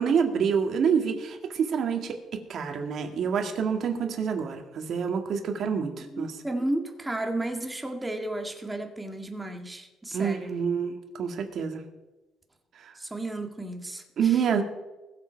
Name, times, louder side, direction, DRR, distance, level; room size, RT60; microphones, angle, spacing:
voice 1, 0.0-6.4 10.1-11.8 12.8-12.9 14.2-14.6, right 6 dB, 60° right, 4 dB, 2.1 m, -27 dB
voice 2, 6.0-10.5 13.0-14.6, right 1 dB, 10° right, 4 dB, 2.0 m, -33 dB
21.0 x 7.6 x 4.6 m, 1.1 s
cardioid pair, 110°, 0 cm